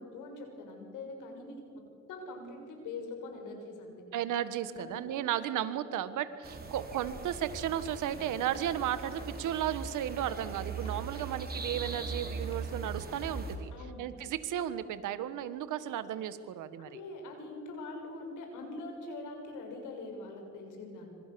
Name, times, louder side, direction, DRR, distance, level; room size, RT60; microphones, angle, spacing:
voice 1, 0.0-1.8 2.1-4.0 4.7-5.6 13.7-14.0 16.8-21.1, left 2 dB, 90° left, 3 dB, 6.5 m, -43 dB
voice 2, 4.1-13.7 14.0-16.9, right 11 dB, 85° right, 13 dB, 1.6 m, -34 dB
sound 1, 6.4-13.6, right 4 dB, 30° right, 4.7 m, -40 dB
sound 2, 7.5-12.8, left 1 dB, 20° left, 6.2 m, -56 dB
26.5 x 26.0 x 7.1 m, 2.4 s
cardioid pair, 90°, 30 cm